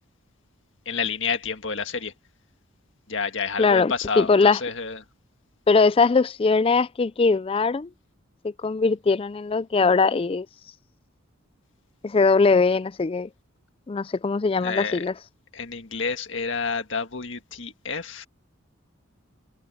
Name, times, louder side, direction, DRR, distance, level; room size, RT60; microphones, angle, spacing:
voice 1, 0.8-2.1 3.1-5.0 14.6-15.0 15.5-18.3, left 5 dB, 60° left, 1.8 m, -29 dB
voice 2, 3.6-4.6 5.7-7.9 8.4-10.5 12.0-13.3 13.9-15.1, left 4 dB, 25° left, 0.3 m, -21 dB
head